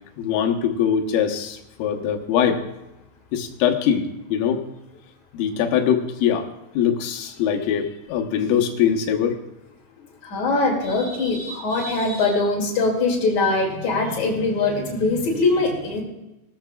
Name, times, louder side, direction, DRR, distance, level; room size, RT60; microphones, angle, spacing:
voice 1, 0.2-2.6 3.3-4.6 5.3-6.5 6.8-9.4, left 8 dB, 85° left, 3 dB, 3.7 m, -22 dB
voice 2, 10.2-16.0, left 3 dB, 45° left, -1 dB, 3.2 m, -22 dB
20.5 x 13.5 x 2.4 m, 0.93 s
omnidirectional pair, 5.7 m